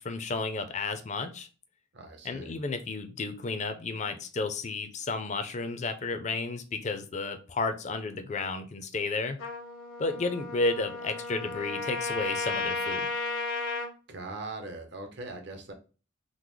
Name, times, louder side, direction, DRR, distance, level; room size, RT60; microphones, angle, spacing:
voice 1, 0.0-1.5 2.2-9.4 10.0-13.0, left 3 dB, 35° left, 8 dB, 0.4 m, -32 dB
voice 2, 1.9-2.6 14.1-15.7, right 2 dB, 60° right, 4 dB, 0.8 m, -40 dB
Trumpet, 9.4-13.9, left 3 dB, 80° left, 1.0 m, -34 dB
3.7 x 2.0 x 3.1 m, 0.34 s
head